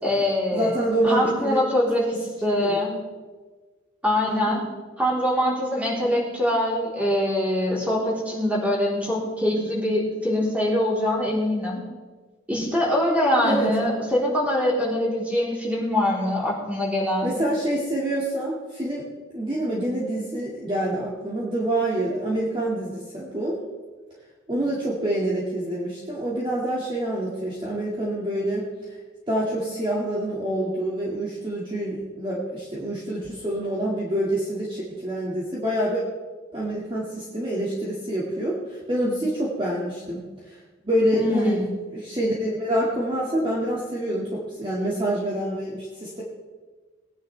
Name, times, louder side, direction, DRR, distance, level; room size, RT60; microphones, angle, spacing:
voice 1, 0.0-0.8 1.0-2.9 4.0-4.6 5.0-11.8 12.5-17.4 41.1-41.7, left 1 dB, 5° right, -5 dB, 3.7 m, -23 dB
voice 2, 0.5-1.6 2.6-2.8 4.2-4.7 13.4-13.7 17.2-19.0 19.3-23.6 24.5-28.7 29.3-36.0 36.5-40.2 40.5-40.6 40.8-41.6 41.9-46.2, right 1 dB, 25° right, -6 dB, 2.1 m, -26 dB
20.5 x 10.0 x 3.4 m, 1.4 s
head